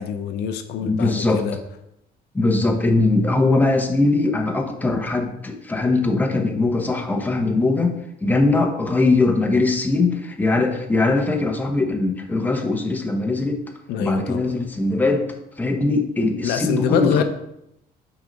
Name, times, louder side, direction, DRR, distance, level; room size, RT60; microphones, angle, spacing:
voice 1, 0.0-1.6 13.9-14.5 16.4-17.2, left 8 dB, 85° left, 8 dB, 0.7 m, -25 dB
voice 2, 0.8-1.4 2.3-13.6 14.0-15.3 15.6-17.2, left 3 dB, 10° left, 3 dB, 0.9 m, -21 dB
6.0 x 4.0 x 5.2 m, 0.80 s
cardioid pair, 110°, 17 cm